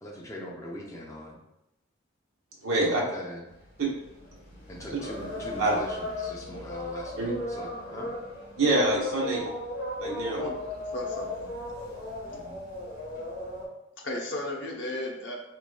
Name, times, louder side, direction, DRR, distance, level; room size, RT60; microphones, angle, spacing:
voice 1, 0.0-1.4 2.8-3.4 4.7-8.1 12.2-12.6, equal, 15° left, -2 dB, 0.6 m, -41 dB
voice 2, 2.6-3.0 3.8-3.9 5.6-5.7 7.2-7.3 8.6-9.5 10.0-10.5, right 2 dB, 90° right, -3 dB, 1.0 m, -25 dB
sound 1, 3.5-13.7, left 2 dB, 45° left, 1.5 m, -37 dB
voice 3, 10.3-11.5 14.0-15.3, left 1 dB, 60° left, -1 dB, 0.8 m, -35 dB
4.7 x 3.0 x 2.3 m, 0.90 s
head